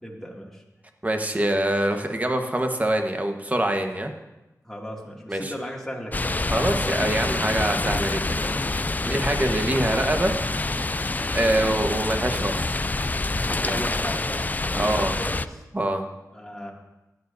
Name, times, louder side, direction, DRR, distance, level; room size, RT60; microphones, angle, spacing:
voice 1, 0.0-0.6 4.6-6.9 8.9-9.6 13.6-15.6 16.3-16.7, equal, 5° left, -3 dB, 2.3 m, -36 dB
voice 2, 1.0-4.1 5.3-5.5 6.5-8.5 9.0-10.4 11.3-12.8 13.6-13.8 14.7-15.1 15.7-16.0, right 1 dB, 25° right, 4 dB, 1.2 m, -24 dB
sound 1, 6.1-15.5, left 2 dB, 25° left, 0.3 m, -26 dB
15.5 x 10.5 x 2.6 m, 1.0 s
wide cardioid pair, 65°, 6 cm